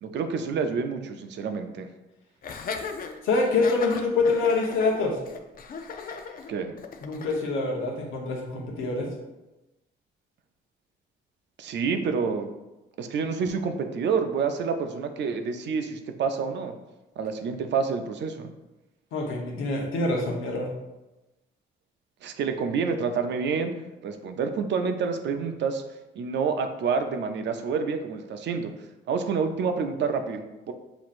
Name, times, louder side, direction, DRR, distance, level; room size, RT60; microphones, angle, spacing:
voice 1, 0.0-1.9 6.5-6.7 11.6-12.5 13.0-16.7 17.2-18.5 22.2-23.8 24.0-25.8 26.2-28.7 29.1-30.7, right 5 dB, 65° right, 7 dB, 0.5 m, -28 dB
Laughter, 2.4-7.4, left 5 dB, 45° left, 0.5 m, -37 dB
voice 2, 3.2-5.2 7.0-9.1 19.1-20.7, left 3 dB, 85° left, -1 dB, 1.0 m, -25 dB
6.1 x 2.9 x 2.5 m, 1.0 s
cardioid pair, 90°, 20 cm